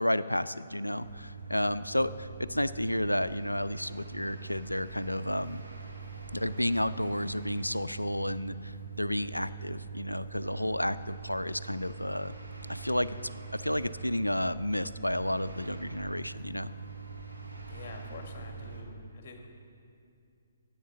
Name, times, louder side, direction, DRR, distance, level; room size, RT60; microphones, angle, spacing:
voice 1, 0.0-5.6 6.3-12.4 12.7-13.2 13.5-16.7, left 1 dB, 85° left, 15 dB, 0.4 m, -31 dB
sound 1, 1.0-18.8, right 5 dB, 75° right, 1.7 m, -43 dB
voice 2, 17.7-19.5, left 3 dB, 40° left, 3 dB, 1.6 m, -46 dB
11.0 x 8.5 x 7.3 m, 2.4 s
figure-of-eight pair, 130°, 0 cm